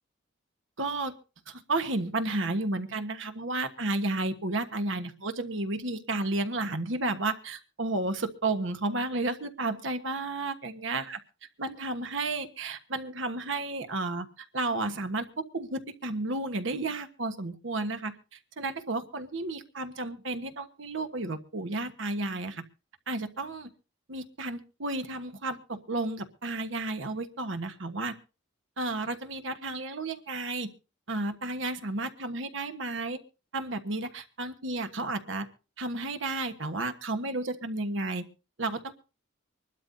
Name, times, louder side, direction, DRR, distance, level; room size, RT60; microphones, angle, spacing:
voice 1, 0.8-1.1 1.5-11.2 11.6-14.3 14.5-18.1 18.6-22.6 23.1-23.7 24.1-28.1 28.8-30.7 31.1-33.2 33.5-35.5 35.8-38.2 38.6-39.0, right 2 dB, 65° right, 8 dB, 1.3 m, -32 dB
24.5 x 12.0 x 2.7 m, 0.32 s
head